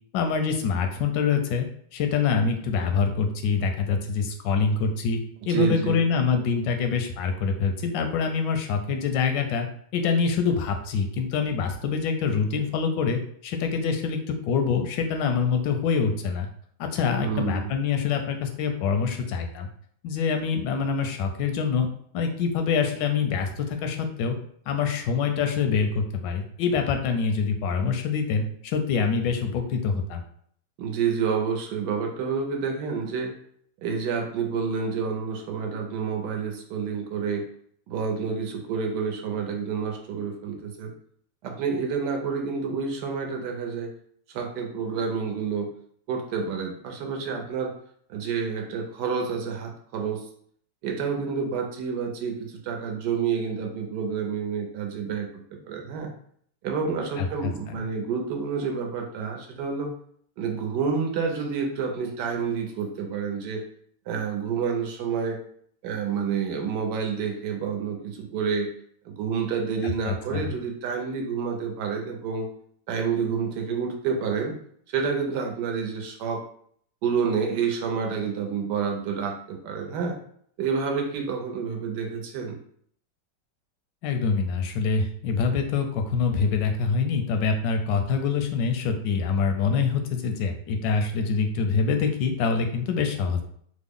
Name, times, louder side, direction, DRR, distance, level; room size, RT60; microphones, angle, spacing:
voice 1, 0.1-1.7 1.9-5.2 5.5-9.7 9.9-16.5 16.8-19.7 20.0-21.9 22.1-24.4 24.7-30.2 57.2-57.5 70.1-70.5 84.0-93.4, left 5 dB, 85° left, 5 dB, 1.2 m, -25 dB
voice 2, 5.5-6.0 17.2-17.7 30.8-33.3 33.8-37.4 37.9-40.9 41.4-43.9 44.3-45.7 46.1-47.7 48.1-50.3 50.8-55.3 55.6-56.1 56.6-59.9 60.4-63.6 64.1-65.4 65.8-68.7 69.0-72.5 72.9-74.5 74.9-76.4 77.0-80.2 80.6-82.6, right 6 dB, 75° right, 3 dB, 1.2 m, -29 dB
3.5 x 2.0 x 3.5 m, 0.63 s
omnidirectional pair, 1.9 m